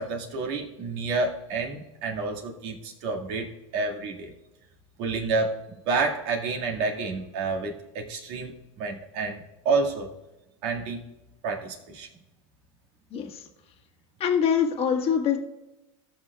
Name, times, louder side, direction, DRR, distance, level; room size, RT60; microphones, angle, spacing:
voice 1, 0.0-4.3 5.0-5.6 5.9-8.5 8.8-10.1 10.6-11.0 11.4-12.1, right 4 dB, 60° right, 0 dB, 2.0 m, -29 dB
voice 2, 13.1-13.4 14.2-15.4, left 7 dB, 35° left, 2 dB, 1.6 m, -24 dB
17.0 x 6.1 x 2.4 m, 0.99 s
hypercardioid pair, 105°, 17 cm